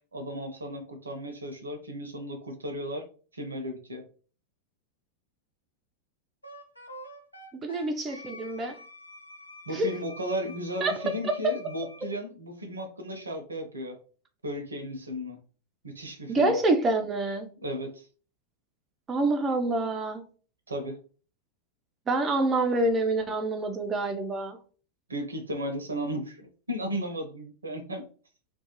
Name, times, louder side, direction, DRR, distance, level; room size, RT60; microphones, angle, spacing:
voice 1, 0.1-3.1 3.3-4.0 9.7-14.0 14.4-15.4 15.8-16.5 17.6-18.1 20.7-21.0 25.1-28.1, equal, 75° right, 5 dB, 0.6 m, -35 dB
Wind instrument woodwind instrument, 6.4-12.1, left 1 dB, 85° left, 0.5 m, -47 dB
voice 2, 7.6-8.8 9.7-9.9 10.8-11.5 16.3-17.5 19.1-20.2 22.1-24.6, right 2 dB, 20° right, 4 dB, 0.4 m, -27 dB
2.4 x 2.2 x 2.8 m, 0.39 s
figure-of-eight pair, 90°, 0 cm